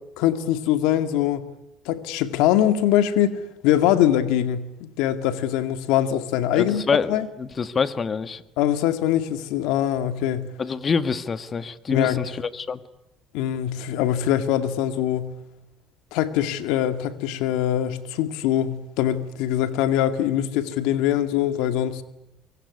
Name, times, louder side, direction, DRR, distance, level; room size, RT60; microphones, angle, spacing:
voice 1, 0.2-1.5 1.9-6.8 7.1-7.3 8.6-10.5 11.9-12.3 13.3-15.3 16.1-22.0, left 11 dB, 80° left, 2.1 m, -23 dB
voice 2, 6.5-8.4 10.6-12.8, left 5 dB, 35° left, 1.6 m, -26 dB
24.0 x 23.5 x 9.8 m
supercardioid pair, 95°, 0 cm